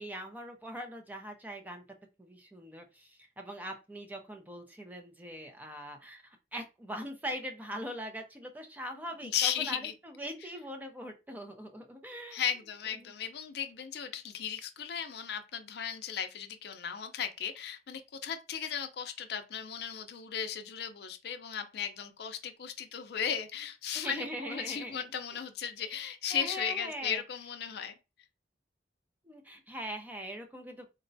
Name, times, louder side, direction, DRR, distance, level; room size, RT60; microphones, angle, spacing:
voice 1, 0.0-1.8 2.2-12.4 13.0-13.1 23.9-25.0 25.8-27.2 29.2-30.9, equal, 10° right, 0.5 m, -41 dB
voice 2, 9.2-9.9 12.3-27.9, left 8 dB, 65° left, 0.5 m, -36 dB
3.9 x 2.2 x 2.6 m
head